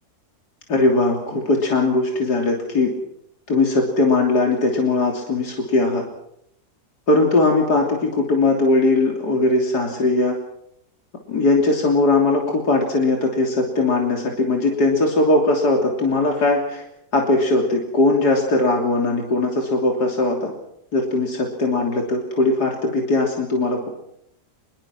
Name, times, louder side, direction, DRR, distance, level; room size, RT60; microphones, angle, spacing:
voice 1, 0.7-2.9 3.5-6.0 7.1-10.4 11.3-16.8 17.1-20.5 20.9-23.9, left 2 dB, 80° left, 1 dB, 3.6 m, -19 dB
25.0 x 22.5 x 6.1 m, 0.76 s
omnidirectional pair, 1.7 m